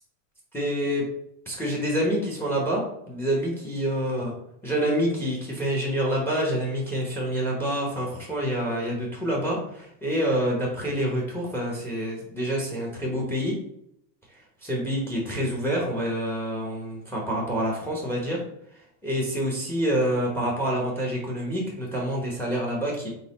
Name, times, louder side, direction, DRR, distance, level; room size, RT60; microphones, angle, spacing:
voice 1, 0.5-1.1 1.5-4.3 4.6-13.5 14.6-18.4 19.0-23.1, equal, 5° left, -2 dB, 0.8 m, -27 dB
4.0 x 2.1 x 4.0 m, 0.73 s
supercardioid pair, 125°, 48 cm